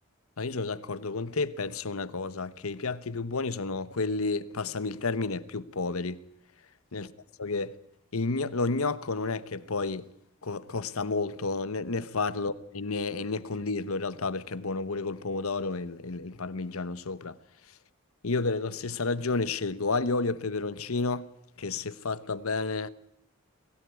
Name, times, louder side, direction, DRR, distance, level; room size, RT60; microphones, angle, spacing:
voice 1, 0.4-6.2 6.9-7.1 7.4-7.8 8.1-10.1 10.4-17.4 18.2-21.3 21.6-22.9, left 3 dB, 85° left, 1.1 m, -31 dB
22.5 x 16.5 x 9.6 m
head